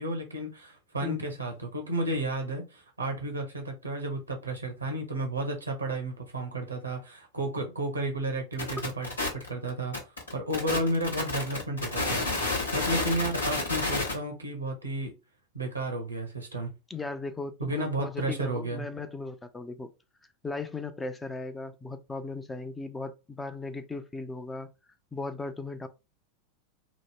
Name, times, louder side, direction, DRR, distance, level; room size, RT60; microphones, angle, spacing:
voice 1, 0.0-9.1 9.3-10.0 10.3-12.2 12.7-15.1 15.5-16.7 17.6-18.9, right 1 dB, 85° right, 0.7 m, -32 dB
voice 2, 1.0-1.3 16.9-19.9 20.4-24.7 25.1-25.9, left 3 dB, 10° left, 0.4 m, -37 dB
sound 1, 8.5-14.1, left 2 dB, 75° left, 0.9 m, -30 dB
2.9 x 2.0 x 3.4 m
figure-of-eight pair, 85°, 0 cm